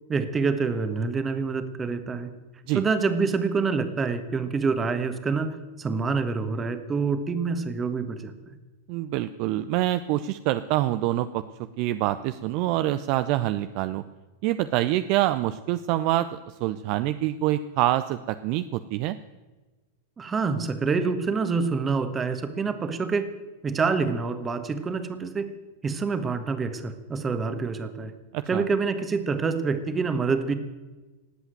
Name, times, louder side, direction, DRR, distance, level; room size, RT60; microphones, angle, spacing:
voice 1, 0.1-2.3 2.7-8.3 20.2-23.3 23.6-25.5 25.8-28.1 28.5-30.5, right 4 dB, 20° right, 10 dB, 1.5 m, -26 dB
voice 2, 8.9-11.4 11.8-14.0 14.4-19.2 28.3-28.6, right 14 dB, 45° right, 12 dB, 0.5 m, -26 dB
18.0 x 8.1 x 9.2 m, 1.2 s
figure-of-eight pair, 90°, 0 cm